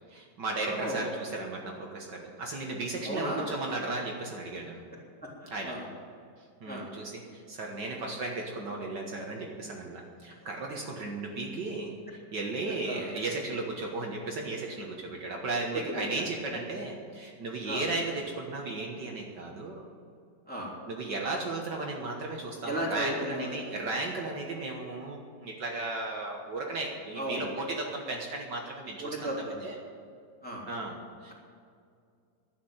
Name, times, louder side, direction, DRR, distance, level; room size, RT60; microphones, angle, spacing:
voice 1, 0.1-4.8 5.5-5.8 6.6-19.8 20.9-29.3 29.6-29.8 30.7-31.3, right 2 dB, 60° right, 0 dB, 2.0 m, -35 dB
voice 2, 0.6-1.0 3.0-3.5 5.2-5.8 6.7-6.9 12.8-13.0 15.9-16.2 17.6-17.8 20.5-20.7 22.7-23.6 27.2-27.4 29.0-29.6 30.4-30.6, right 1 dB, 5° left, -5 dB, 3.1 m, -35 dB
12.0 x 8.6 x 8.8 m, 2.3 s
omnidirectional pair, 2.2 m